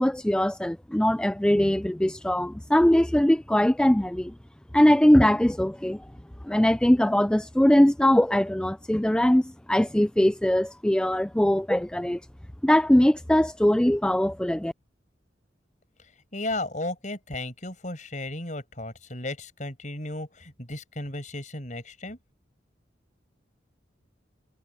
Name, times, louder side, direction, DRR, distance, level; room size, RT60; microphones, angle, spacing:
voice 1, 0.0-4.3 4.7-6.0 6.4-12.2 12.6-14.7, left 1 dB, 5° left, 0.3 m, -21 dB
voice 2, 16.3-22.2, left 2 dB, 40° left, 6.3 m, -34 dB
head